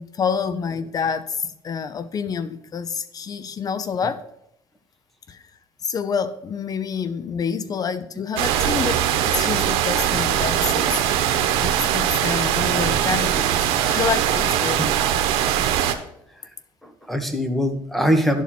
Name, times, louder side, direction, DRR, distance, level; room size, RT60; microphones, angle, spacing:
voice 1, 0.0-4.2 5.3-5.4 5.8-11.2 11.6-13.6 13.8-14.8, left 6 dB, 40° left, 13 dB, 0.7 m, -27 dB
sound 1, 8.4-15.9, right 10 dB, 85° right, 0.9 m, -21 dB
voice 2, 16.8-18.4, equal, ahead, 6 dB, 1.4 m, -23 dB
11.0 x 4.2 x 5.9 m, 0.77 s
cardioid pair, 105°, 10 cm